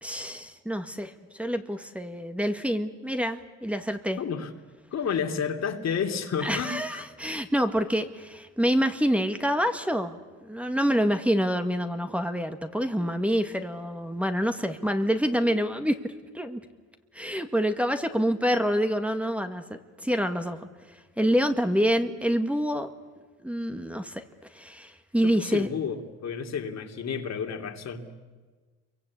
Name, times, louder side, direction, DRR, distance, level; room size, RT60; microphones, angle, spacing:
voice 1, 0.0-4.2 6.4-16.6 17.1-22.9 23.4-24.2 24.5-25.7, equal, 5° right, 7 dB, 1.8 m, -27 dB
voice 2, 4.2-4.5 4.9-7.0 25.2-28.1, left 6 dB, 60° left, 5 dB, 2.9 m, -31 dB
28.5 x 23.5 x 8.5 m, 1.3 s
cardioid pair, 90°, 30 cm